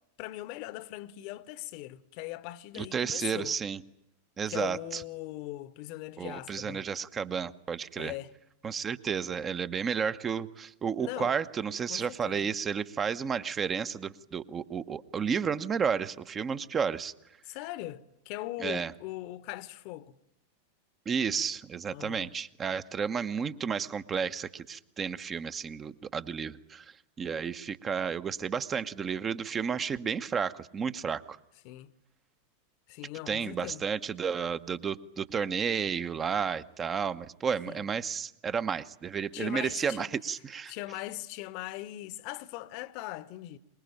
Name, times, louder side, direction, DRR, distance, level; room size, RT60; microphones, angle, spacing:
voice 1, 0.2-3.6 4.5-6.8 8.0-8.3 11.0-11.4 11.9-12.5 17.4-20.2 21.9-22.3 31.6-31.9 32.9-33.8 37.7-37.8 39.3-40.1 40.7-43.6, left 16 dB, 45° left, 1.1 m, -40 dB
voice 2, 2.7-3.8 4.4-5.0 6.2-8.1 8.6-17.1 18.6-18.9 21.1-26.9 27.2-31.4 33.3-40.7, right 6 dB, 20° right, 1.0 m, -32 dB
24.5 x 21.5 x 9.1 m
figure-of-eight pair, 90°, 0 cm